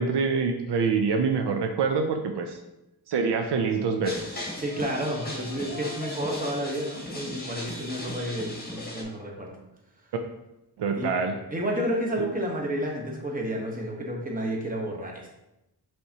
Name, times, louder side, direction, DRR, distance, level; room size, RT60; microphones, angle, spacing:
voice 1, 0.0-2.6 3.1-4.4 10.8-11.3, right 5 dB, 75° right, 5 dB, 0.5 m, -25 dB
sound 1, 4.0-9.0, left 1 dB, 20° left, 1.1 m, -37 dB
voice 2, 4.6-9.6 10.9-11.1 11.5-15.3, equal, 20° right, -1 dB, 1.1 m, -31 dB
5.3 x 3.4 x 2.8 m, 0.91 s
cardioid pair, 80°, 42 cm